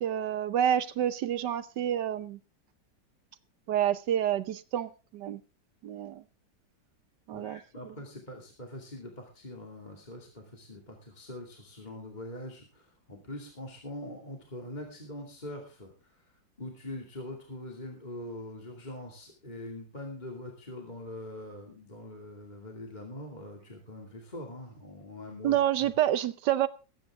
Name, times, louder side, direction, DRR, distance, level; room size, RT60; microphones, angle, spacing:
voice 1, 0.0-2.4 3.7-5.4 5.8-6.2 7.3-7.6 7.9-8.0 25.4-26.7, right 11 dB, 75° right, 14 dB, 1.4 m, -28 dB
voice 2, 7.3-16.1 16.6-25.6, left 1 dB, 25° left, 1 dB, 2.6 m, -43 dB
21.0 x 9.4 x 3.7 m, 0.33 s
omnidirectional pair, 2.0 m